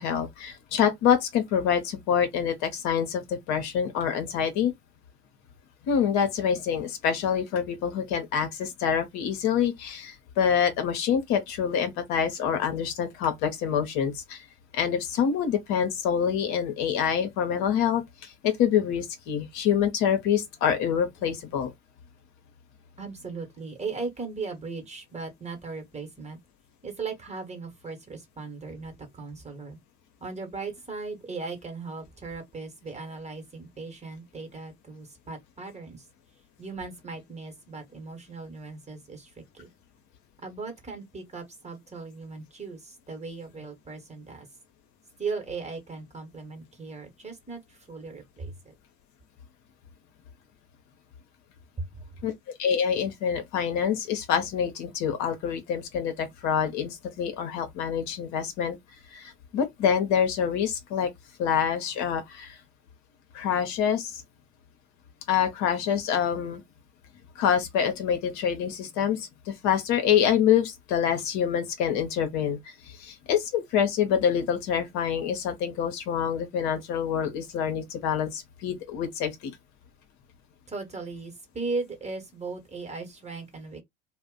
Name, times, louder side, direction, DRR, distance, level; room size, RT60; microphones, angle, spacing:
voice 1, 0.0-4.7 5.9-14.4 14.7-21.7 52.2-52.3 52.6-58.8 59.1-61.1 61.4-62.6 63.3-64.2 65.3-66.6 67.4-79.5, left 8 dB, 55° left, 0.9 m, -26 dB
voice 2, 23.0-26.4 26.8-29.8 30.2-36.1 36.6-39.7 40.4-44.5 45.2-48.7 51.8-51.9 80.7-83.8, right 4 dB, 20° right, 1.2 m, -37 dB
2.5 x 2.2 x 3.8 m
figure-of-eight pair, 65°, 35 cm